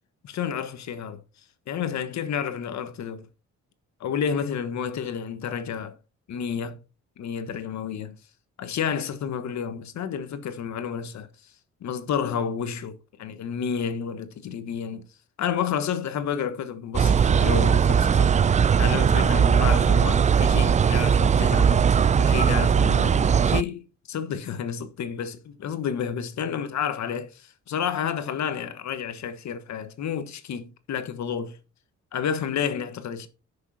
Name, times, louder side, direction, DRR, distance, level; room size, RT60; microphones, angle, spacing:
voice 1, 0.2-1.2 1.7-3.3 4.0-6.0 6.3-6.8 7.2-8.2 8.6-11.3 11.8-15.1 15.4-18.3 18.7-21.9 22.2-31.6 32.1-33.3, left 7 dB, 65° left, 1.4 m, -30 dB
sound 1, 16.9-23.6, right 7 dB, 25° right, 0.4 m, -19 dB
9.8 x 6.6 x 4.2 m
cardioid pair, 90°, 30 cm